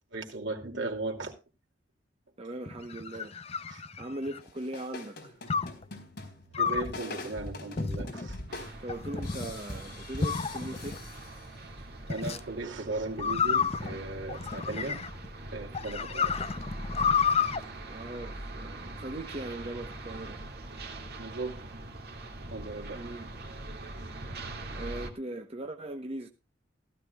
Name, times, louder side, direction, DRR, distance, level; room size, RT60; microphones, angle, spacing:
voice 1, 0.1-1.3 3.1-3.3 3.7-3.8 6.6-8.4 12.1-15.0 15.5-16.4 21.2-21.6 22.5-23.0, right 2 dB, 85° right, 2.7 m, -37 dB
voice 2, 2.4-3.4 4.0-5.4 8.8-11.0 17.9-20.4 22.9-23.3 24.7-26.3, right 1 dB, 35° right, 0.9 m, -39 dB
sound 1, 2.7-4.5 5.5-5.8 6.5-7.0 7.8-8.3 8.9-9.5 10.2-11.0 12.1-12.4 13.2-15.3 15.7-17.6, left 6 dB, 35° left, 0.6 m, -30 dB
sound 2, 4.4-11.8, left 2 dB, 60° left, 4.1 m, -43 dB
sound 3, 8.5-25.1, right 2 dB, 55° right, 2.2 m, -42 dB
15.5 x 14.0 x 2.3 m
head